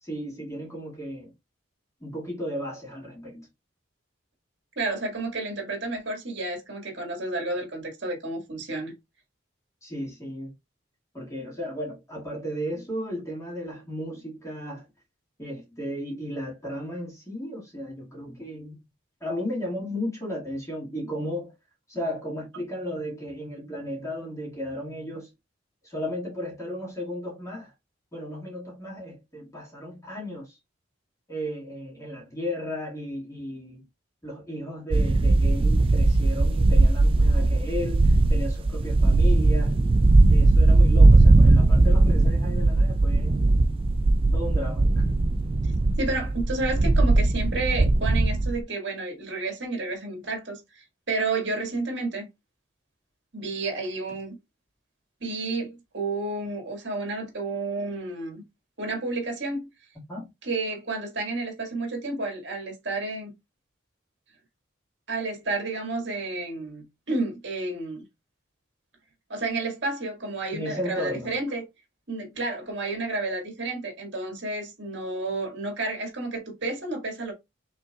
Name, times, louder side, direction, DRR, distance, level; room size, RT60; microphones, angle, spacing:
voice 1, 0.0-1.3 2.0-3.5 9.8-10.5 11.1-14.9 15.4-18.8 19.2-21.5 21.9-25.3 25.8-27.7 28.1-30.6 31.3-33.8 34.2-39.8 40.3-43.4 44.3-45.1 60.1-60.3 70.5-71.3, equal, 15° left, 2.1 m, -34 dB
voice 2, 4.8-8.9 46.0-52.3 53.3-54.3 55.2-58.4 58.8-59.7 60.4-63.3 65.1-68.0 69.3-71.6 72.1-77.3, right 2 dB, 65° right, 1.9 m, -31 dB
sound 1, 34.9-48.6, right 2 dB, 25° right, 0.3 m, -19 dB
5.5 x 3.6 x 2.4 m
head